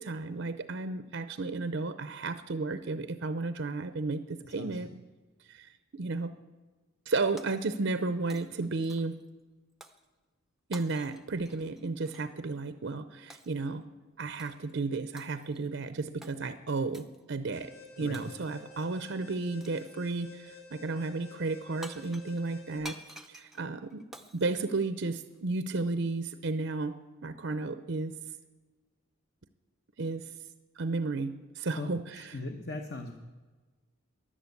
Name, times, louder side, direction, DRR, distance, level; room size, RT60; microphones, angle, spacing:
voice 1, 0.0-4.9 5.4-6.3 7.1-9.2 10.7-13.9 14.2-17.7 18.0-23.0 23.3-24.0 24.3-26.9 27.2-28.1 30.0-30.3 30.8-32.4, right 3 dB, 55° right, 11 dB, 0.6 m, -33 dB
voice 2, 4.6-4.9 18.0-18.3 31.8-33.1, left 2 dB, 50° left, 4 dB, 1.0 m, -39 dB
Shatter, 7.4-8.0 8.3-9.2 9.8-10.1 10.7-12.3 13.3-13.6 14.4-14.7 15.2-15.6 16.2-16.4 16.9-17.2 18.1-18.7 19.6-20.0 21.5-21.6 21.8-25.4, equal, ahead, 0.6 m, -50 dB
Alarm, 17.5-22.8, left 4 dB, 75° left, 6.1 m, -51 dB
13.5 x 11.0 x 8.3 m, 1.3 s
head